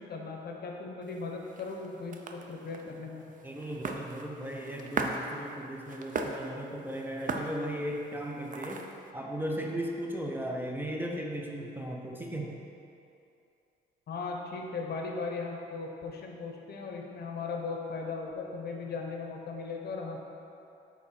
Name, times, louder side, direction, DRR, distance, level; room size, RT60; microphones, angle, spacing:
voice 1, 0.0-3.2 14.1-20.2, left 4 dB, 55° left, 1 dB, 0.9 m, -37 dB
sound 1, 1.0-9.1, right 3 dB, 40° right, 0.6 m, -39 dB
voice 2, 3.4-8.9 9.1-12.5, equal, 10° right, -1 dB, 0.8 m, -36 dB
8.6 x 3.6 x 4.4 m, 2.7 s
cardioid pair, 90°, 20 cm